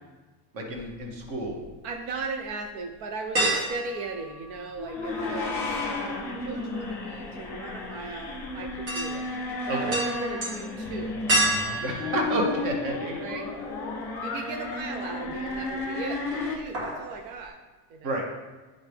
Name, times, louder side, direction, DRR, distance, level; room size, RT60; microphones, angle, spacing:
voice 1, 0.5-1.6 9.7-10.0 11.8-13.1 18.0-18.3, right 1 dB, 40° right, 1 dB, 1.2 m, -30 dB
sound 1, 0.7-1.7 2.2-2.3 3.3-5.1 5.3-13.3 13.7-13.8 15.2-15.8 16.1-16.3 16.5-17.1 17.4-17.5, right 1 dB, 60° right, 2.0 m, -31 dB
voice 2, 1.8-5.5 6.0-9.3 9.7-11.2 13.2-13.5 14.2-17.6 17.9-18.3, right 4 dB, 85° right, 4 dB, 0.8 m, -37 dB
sound 2, 4.8-16.5, left 3 dB, 5° left, 0.3 m, -33 dB
Energy Overload, 10.8-16.3, left 4 dB, 35° left, 0.7 m, -41 dB
9.9 x 3.6 x 3.4 m, 1.3 s
cardioid pair, 170°, 50 cm